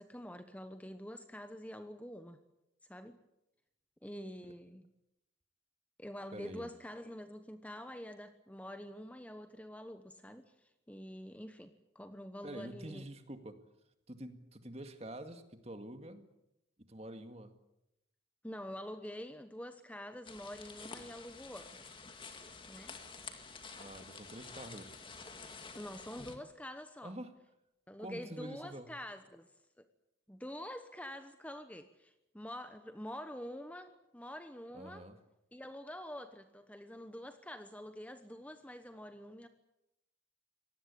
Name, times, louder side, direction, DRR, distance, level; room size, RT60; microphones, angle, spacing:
voice 1, 0.0-2.4 2.9-3.2 4.0-4.9 6.0-13.0 18.4-21.8 22.7-23.0 25.7-27.2 27.9-29.5 29.8-29.9 30.3-35.0 35.5-39.5, equal, 10° left, 9 dB, 1.1 m, -46 dB
voice 2, 6.3-6.7 12.4-13.6 14.1-16.2 16.9-17.6 23.8-24.9 27.0-27.3 28.0-28.9 34.7-35.2, right 1 dB, 35° right, 8 dB, 2.1 m, -47 dB
sound 1, 20.2-26.4, left 4 dB, 25° left, 2.2 m, -50 dB
25.0 x 19.0 x 8.6 m, 0.86 s
head